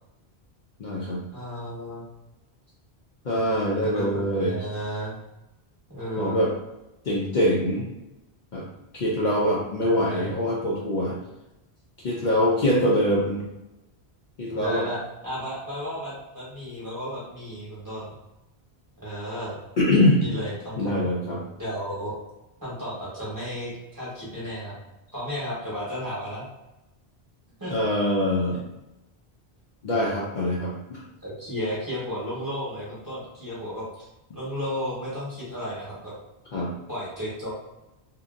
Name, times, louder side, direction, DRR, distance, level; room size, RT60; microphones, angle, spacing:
voice 1, 0.8-1.2 3.2-4.6 6.2-6.5 7.0-7.9 8.5-8.7 8.9-11.1 12.0-13.5 14.4-14.9 19.8-20.3 20.8-21.4 27.7-28.6 29.8-31.0 36.5-36.7, left 1 dB, 55° left, -5 dB, 0.6 m, -23 dB
voice 2, 1.3-2.0 3.8-5.2 5.9-6.5 9.8-10.5 14.5-15.0 15.2-18.1 19.0-19.6 20.2-20.9 21.6-22.1 22.6-24.8 25.1-26.5 27.6-27.8 28.5-28.6 31.2-34.1 34.3-36.1 36.9-37.5, equal, 20° right, -9 dB, 1.1 m, -33 dB
2.8 x 2.6 x 2.4 m, 0.96 s
omnidirectional pair, 1.1 m